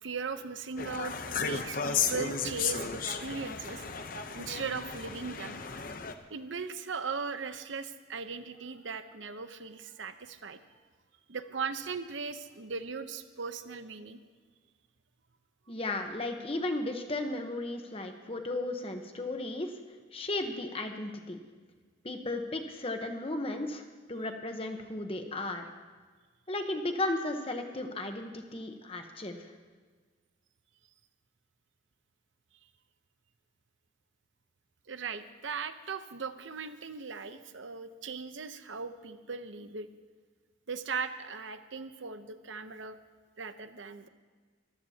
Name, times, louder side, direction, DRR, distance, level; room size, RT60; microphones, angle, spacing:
voice 1, 0.0-5.6 6.3-10.8 11.3-14.2 34.9-39.9 40.7-43.0 43.4-44.1, right 5 dB, 80° right, 10 dB, 0.8 m, -38 dB
sound 1, 0.8-6.1, left 6 dB, 45° left, 0.8 m, -34 dB
voice 2, 15.7-19.7 20.1-21.4 22.0-23.8 24.1-25.7 26.5-29.4, left 2 dB, 30° left, 5 dB, 1.0 m, -35 dB
23.5 x 14.5 x 2.9 m, 1.5 s
head